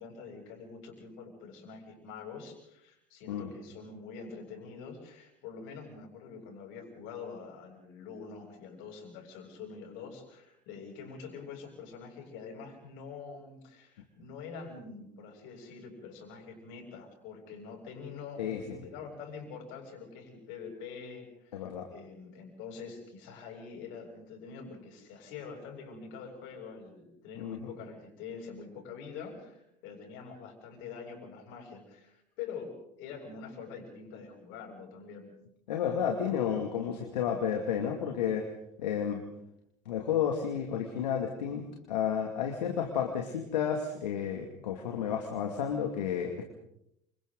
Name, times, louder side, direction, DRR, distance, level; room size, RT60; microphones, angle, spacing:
voice 1, 0.0-35.3, left 5 dB, 70° left, 2 dB, 7.6 m, -45 dB
voice 2, 18.4-18.8 21.5-21.9 27.4-27.7 35.7-38.4 38.8-39.2 39.9-46.4, left 8 dB, 85° left, 3 dB, 2.4 m, -32 dB
29.0 x 26.5 x 3.9 m, 0.77 s
hypercardioid pair, 70°, 21 cm